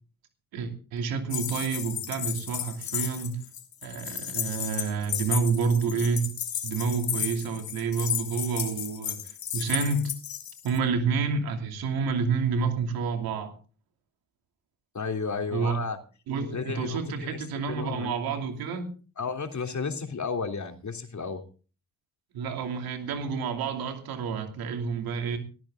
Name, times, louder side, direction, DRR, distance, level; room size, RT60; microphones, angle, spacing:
voice 1, 0.5-3.4 3.8-6.3 6.6-10.1 10.6-13.6 15.5-15.8 16.3-18.9 22.3-25.4, right 5 dB, 90° right, 5 dB, 2.8 m, -29 dB
sound 1, 1.3-10.8, left 9 dB, 75° left, 2.7 m, -34 dB
voice 2, 14.9-16.0 16.5-17.4 17.7-18.1 19.2-21.4, left 5 dB, 55° left, 5 dB, 3.2 m, -32 dB
18.5 x 14.0 x 3.8 m, 0.37 s
supercardioid pair, 40°, 36 cm